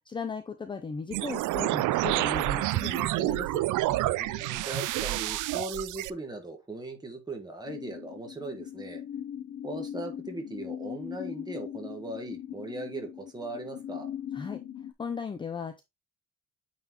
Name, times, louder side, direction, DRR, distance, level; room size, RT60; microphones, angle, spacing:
voice 1, 0.1-3.6 14.3-14.6 15.0-15.8, left 5 dB, 15° left, 0.5 m, -36 dB
sound 1, 1.1-6.1, right 16 dB, 85° right, 0.5 m, -28 dB
voice 2, 4.2-9.0 9.6-14.1, right 2 dB, 15° right, 1.4 m, -39 dB
sound 2, 7.7-14.9, left 10 dB, 45° left, 0.8 m, -40 dB
8.8 x 4.1 x 2.9 m
cardioid pair, 175°, 30 cm